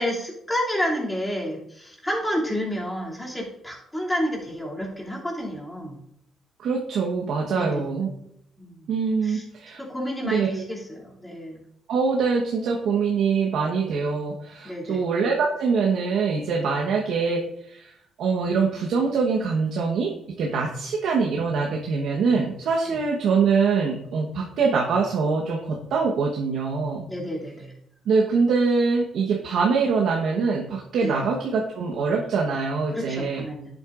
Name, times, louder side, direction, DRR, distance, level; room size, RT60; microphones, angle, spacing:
voice 1, 0.0-6.0 7.5-7.9 8.6-8.9 9.2-9.4 9.8-11.6 14.6-15.1 22.8-23.0 27.1-27.7 31.0-31.3 32.9-33.7, equal, 10° left, -3 dB, 2.7 m, -30 dB
voice 2, 6.6-8.1 8.9-9.8 10.2-10.6 11.9-17.9 18.2-27.1 28.1-33.4, right 5 dB, 75° right, -1 dB, 1.1 m, -24 dB
10.5 x 7.8 x 2.5 m, 0.74 s
cardioid pair, 90°, 0 cm